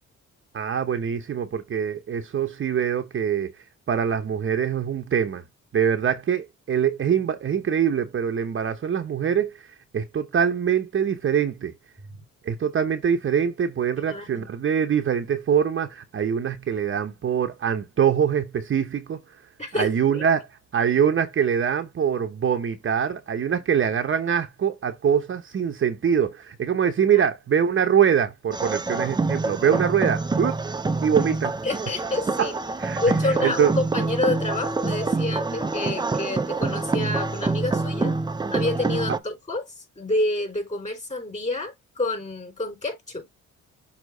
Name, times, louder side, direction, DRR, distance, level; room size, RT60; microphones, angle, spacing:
voice 1, 0.5-3.5 3.9-5.4 5.7-9.7 9.9-11.7 12.4-19.2 19.8-20.5 20.7-30.6 31.0-31.5 32.4-32.5 32.8-33.0 33.4-33.7, right 8 dB, 40° right, 0.8 m, -23 dB
voice 2, 14.1-14.5 19.6-20.2 27.1-27.2 31.6-32.5 33.0-38.1 38.5-43.3, left 2 dB, 25° left, 4.7 m, -28 dB
sound 1, 28.5-39.2, right 3 dB, 15° right, 0.5 m, -26 dB
6.4 x 3.0 x 5.2 m
cardioid pair, 90°, 30 cm